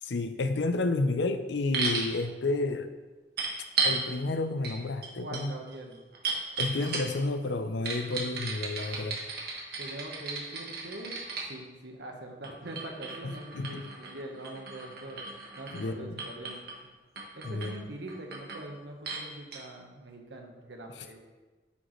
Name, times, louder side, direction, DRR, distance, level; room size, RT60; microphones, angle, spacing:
voice 1, 0.0-2.9 3.8-5.6 6.6-9.2 13.2-13.9 15.7-16.3 17.4-17.7, left 2 dB, 85° left, 9 dB, 0.6 m, -31 dB
sound 1, 1.7-2.1 3.4-4.0 4.6-4.8 5.0-7.3 7.8-11.5 12.4-15.9 16.2-16.8 17.2-17.7 18.1-18.6 19.0-19.2 19.5-19.6, right 4 dB, 60° right, 1.4 m, -34 dB
voice 2, 5.2-6.0 9.8-11.1 11.5-15.2 15.6-16.5 17.4-21.2, right 1 dB, 85° right, 2 dB, 1.3 m, -43 dB
9.5 x 6.4 x 3.2 m, 1.2 s
head